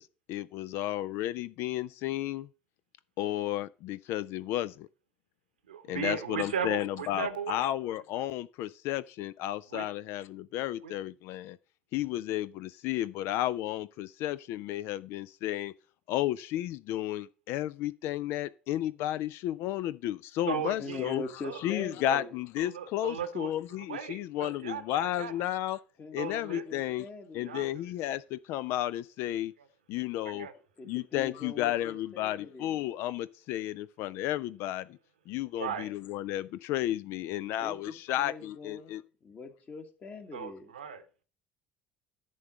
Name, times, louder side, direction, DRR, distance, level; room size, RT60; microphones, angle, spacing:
voice 1, 0.0-2.5 3.2-4.9 5.9-11.6 11.9-15.7 16.1-21.2 21.6-25.8 26.1-27.0 27.3-29.5 29.9-30.5 30.9-34.9 35.3-39.0, left 13 dB, 55° left, 0.3 m, -33 dB
voice 2, 5.7-7.7 8.2-8.3 9.7-9.9 10.8-11.0 20.5-21.6 22.0-22.2 22.6-25.3 26.2-26.9 27.4-27.7 29.6-29.7 30.2-30.5 35.6-35.9 40.3-41.0, right 7 dB, 80° right, 0.9 m, -37 dB
voice 3, 20.8-22.3 26.0-27.7 30.8-32.8 37.6-38.9 39.2-40.7, left 3 dB, 35° left, 1.6 m, -43 dB
10.5 x 3.8 x 7.3 m
figure-of-eight pair, 60°, 5 cm